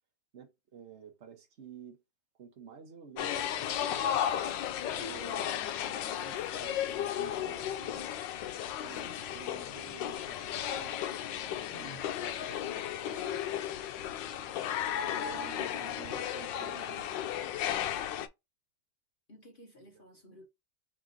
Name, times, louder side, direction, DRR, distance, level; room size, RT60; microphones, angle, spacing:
voice 1, 0.3-2.0 2.4-4.5 4.8-5.6 6.2-8.1 8.8-11.0 11.6-13.7 14.9-17.1 19.9-20.2, right 6 dB, 40° right, 1.1 m, -51 dB
sound 1, 3.2-18.3, left 10 dB, 70° left, 1.1 m, -34 dB
voice 2, 11.7-12.0 15.1-15.4 19.3-20.5, left 1 dB, 55° left, 0.6 m, -53 dB
3.7 x 3.3 x 3.9 m
omnidirectional pair, 2.3 m